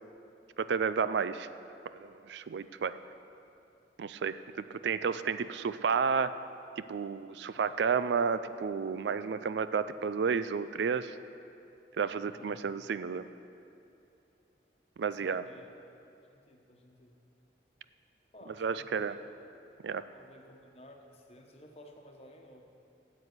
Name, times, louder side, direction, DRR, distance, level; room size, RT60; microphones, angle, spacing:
voice 1, 0.6-1.5 1.9-3.0 4.0-4.4 4.7-6.3 6.8-11.2 12.0-13.3 15.0-15.4 18.6-19.1 19.8-20.0, right 6 dB, 80° right, 13 dB, 0.4 m, -31 dB
voice 2, 15.2-15.7 16.3-17.1 18.3-19.2 20.1-22.6, equal, 35° left, 2 dB, 1.1 m, -54 dB
9.6 x 7.8 x 8.0 m, 2.8 s
head